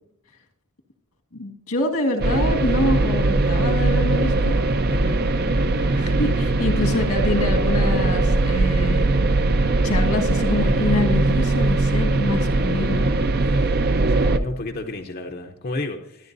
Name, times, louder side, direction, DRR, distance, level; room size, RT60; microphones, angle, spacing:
voice 1, 1.3-4.6 6.0-9.2 9.8-13.1, left 2 dB, 80° left, 2 dB, 1.9 m, -26 dB
sound 1, 2.2-14.4, right 2 dB, 45° right, 0.6 m, -20 dB
voice 2, 4.9-5.2 13.5-13.7 14.1-16.3, left 2 dB, 45° left, 3 dB, 0.7 m, -32 dB
24.0 x 10.0 x 2.7 m, 0.76 s
head